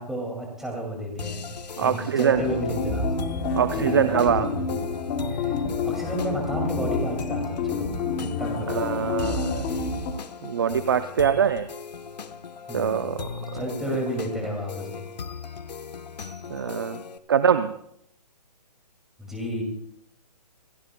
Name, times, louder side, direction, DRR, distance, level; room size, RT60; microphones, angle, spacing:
voice 1, 0.0-1.4 1.8-3.1 3.7-4.6 5.3-7.9 8.4-9.3 12.7-13.1 13.5-15.0 19.2-19.6, right 1 dB, ahead, 0 dB, 2.3 m, -32 dB
sound 1, 1.2-17.2, left 6 dB, 75° left, 1.0 m, -38 dB
voice 2, 1.8-2.4 3.6-4.5 8.7-9.7 10.4-11.7 12.7-13.6 16.5-17.0 17.3-17.7, right 8 dB, 35° right, 11 dB, 0.5 m, -23 dB
sound 2, 2.3-10.1, left 4 dB, 15° left, 0.9 m, -28 dB
27.0 x 15.5 x 2.2 m, 0.73 s
hypercardioid pair, 170°, 21 cm